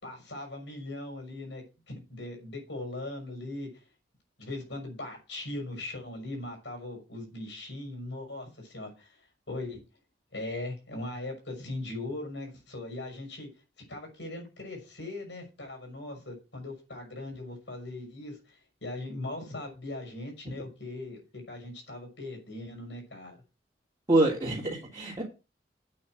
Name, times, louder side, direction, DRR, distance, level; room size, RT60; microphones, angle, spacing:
voice 1, 0.0-3.7 4.4-9.2 9.5-9.8 10.3-13.5 13.9-23.4, left 2 dB, 70° left, 3 dB, 5.9 m, -39 dB
voice 2, 24.1-25.2, right 2 dB, 25° right, -6 dB, 3.0 m, -25 dB
8.9 x 6.3 x 7.6 m, 0.30 s
head